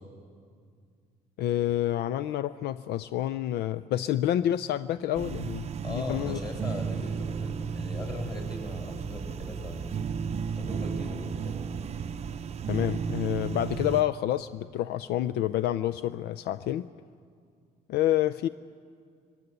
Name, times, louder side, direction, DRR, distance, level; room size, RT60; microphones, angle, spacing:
voice 1, 1.4-6.4 12.7-16.9 17.9-18.5, left 12 dB, 75° left, 15 dB, 0.4 m, -28 dB
sound 1, 5.2-14.0, right 6 dB, 40° right, 0.6 m, -34 dB
voice 2, 5.8-9.9 10.6-11.6, left 2 dB, 25° left, 2 dB, 5.6 m, -39 dB
22.0 x 16.5 x 8.0 m, 2.2 s
cardioid pair, 110°, 17 cm